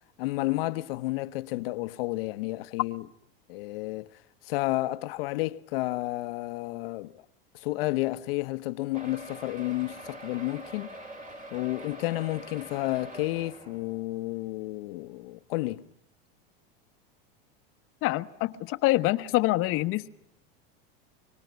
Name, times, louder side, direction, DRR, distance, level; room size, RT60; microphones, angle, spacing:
voice 1, 0.2-3.1 3.5-7.2 7.5-10.9 11.5-15.8, left 19 dB, 70° left, 1.0 m, -31 dB
sound 1, 8.9-14.4 15.0-15.1 15.4-15.5 15.8-15.9, right 1 dB, 25° right, 4.3 m, -44 dB
voice 2, 18.0-20.1, left 18 dB, 45° left, 1.1 m, -26 dB
25.5 x 24.5 x 9.3 m
supercardioid pair, 130°, 29 cm